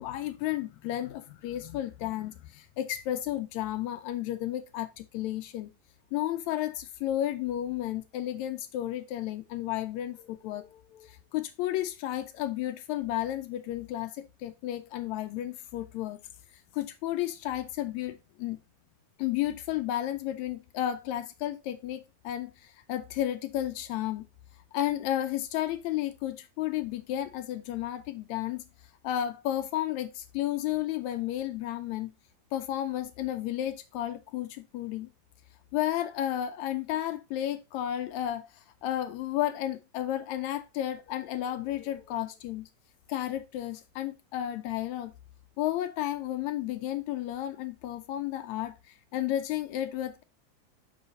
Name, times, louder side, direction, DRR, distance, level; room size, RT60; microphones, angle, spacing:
voice 1, 0.0-5.7 6.1-16.2 16.7-18.6 19.2-24.3 24.7-28.6 29.0-32.1 32.5-35.1 35.7-42.7 43.1-45.1 45.6-50.2, left 12 dB, 80° left, 1.8 m, -32 dB
5.5 x 5.4 x 4.0 m
omnidirectional pair, 3.4 m